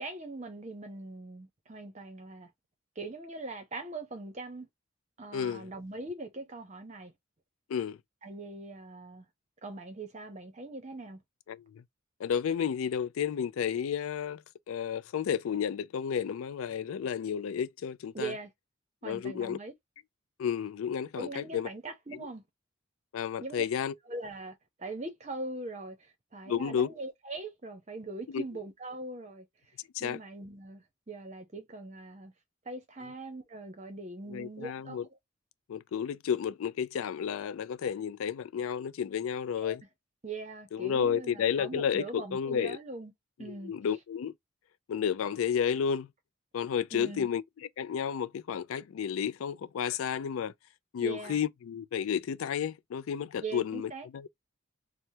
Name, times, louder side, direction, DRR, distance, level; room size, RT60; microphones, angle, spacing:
voice 1, 0.0-2.5 3.0-4.7 5.2-7.1 8.2-9.3 9.6-11.2 18.1-18.5 19.0-19.7 21.2-22.4 23.4-23.6 24.1-29.5 30.0-32.3 32.7-35.0 39.6-39.8 40.2-43.1 43.4-43.7 46.9-47.3 51.0-51.4 53.4-54.1, right 2 dB, 35° right, 0.7 m, -41 dB
voice 2, 5.3-5.7 7.7-8.0 11.5-11.8 12.2-18.3 19.0-19.6 20.4-21.7 22.1-22.3 23.1-23.9 26.5-26.9 28.3-28.4 29.9-30.2 34.3-35.1 35.7-39.8 40.7-42.8 43.4-44.3 44.9-46.1 46.5-50.5 50.9-54.3, left 7 dB, 80° left, 0.3 m, -32 dB
3.3 x 2.1 x 2.7 m
head